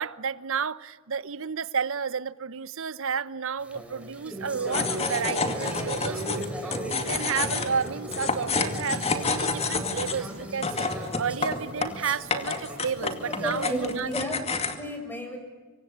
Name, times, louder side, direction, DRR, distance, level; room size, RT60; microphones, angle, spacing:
voice 1, 0.0-14.1, right 6 dB, 65° right, 0.9 m, -32 dB
sound 1, 3.6-14.1, right 1 dB, 5° right, 4.0 m, -37 dB
sound 2, 4.7-14.8, left 4 dB, 30° left, 2.4 m, -30 dB
voice 2, 13.3-15.4, equal, 10° left, 6.7 m, -33 dB
25.5 x 24.5 x 8.8 m
head